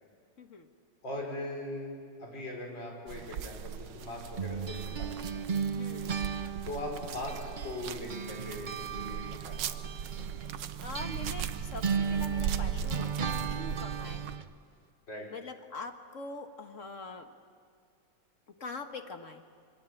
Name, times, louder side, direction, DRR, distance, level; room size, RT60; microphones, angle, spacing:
voice 1, 0.4-0.7 5.8-6.2 10.8-14.3 15.3-17.3 18.6-19.4, left 3 dB, 45° left, 6 dB, 1.7 m, -43 dB
voice 2, 1.0-5.3 6.6-9.6 15.1-15.3, left 1 dB, 75° left, 0 dB, 5.8 m, -40 dB
sound 1, 3.1-14.4, right 8 dB, 75° right, 1.5 m, -39 dB
sound 2, 4.4-7.8 8.1-14.5, right 6 dB, 55° right, 0.5 m, -36 dB
26.0 x 22.5 x 9.2 m, 2.1 s
omnidirectional pair, 2.0 m